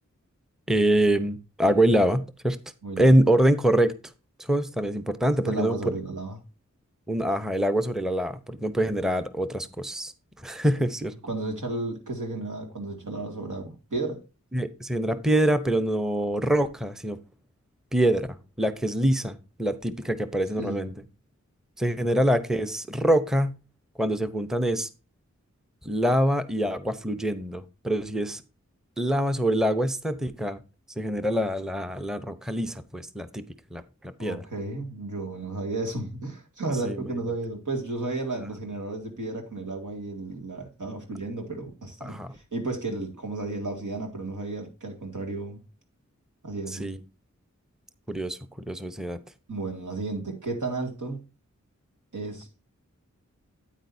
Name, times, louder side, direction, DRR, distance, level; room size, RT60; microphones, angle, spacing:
voice 1, 0.7-2.6 3.0-3.9 4.4-5.8 7.1-10.1 10.4-11.2 14.5-17.2 17.9-20.9 21.8-23.6 24.0-24.9 25.8-28.4 29.0-30.6 31.0-33.4 33.7-33.8 34.2-34.4 36.8-37.1 42.0-42.3 46.7-47.0 48.1-48.4 48.7-49.2, right 1 dB, ahead, 0.8 m, -25 dB
voice 2, 2.8-3.2 5.4-6.4 11.2-14.2 20.6-20.9 34.2-45.6 46.4-46.9 49.5-51.2 52.1-52.6, right 2 dB, 85° right, 2.3 m, -33 dB
9.0 x 9.0 x 2.7 m
wide cardioid pair, 50°, 30 cm